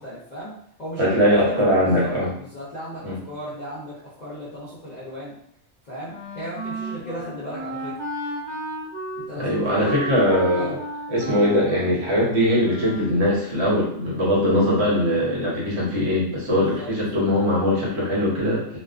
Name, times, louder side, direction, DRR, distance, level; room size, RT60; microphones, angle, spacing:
voice 1, 0.0-5.4 5.8-8.0 9.2-10.0 10.5-10.8 16.5-16.9, equal, 50° left, -8 dB, 0.5 m, -36 dB
voice 2, 1.0-2.3 3.0-3.1 9.4-10.8 11.1-18.8, equal, 60° right, -5 dB, 1.0 m, -21 dB
Wind instrument woodwind instrument, 6.1-13.2, right 1 dB, 40° right, 0.9 m, -34 dB
2.4 x 2.2 x 2.3 m, 0.68 s
omnidirectional pair, 1.4 m